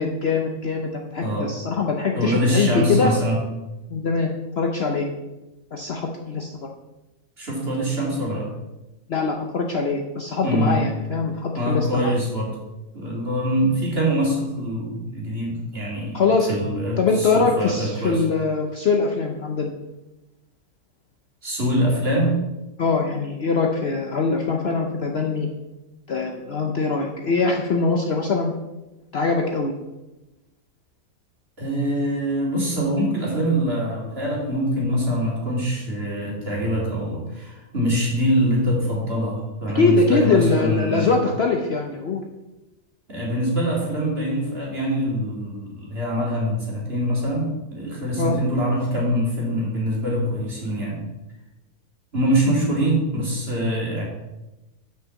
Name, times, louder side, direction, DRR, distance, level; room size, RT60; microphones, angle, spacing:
voice 1, 0.0-3.2 3.9-5.1 5.7-6.7 9.1-12.1 16.1-16.5 17.0-19.7 22.8-25.5 26.1-28.5 29.1-29.7 39.7-42.2 48.2-48.4, left 4 dB, 50° left, 1 dB, 0.8 m, -22 dB
voice 2, 1.2-1.5 2.1-3.4 7.4-8.5 10.4-10.8 11.5-12.5 12.9-16.2 16.5-18.2 21.4-22.4 31.6-41.2 43.1-51.0 52.1-54.1, equal, 40° right, -3 dB, 2.7 m, -24 dB
5.7 x 5.7 x 6.9 m, 1.0 s
omnidirectional pair, 1.6 m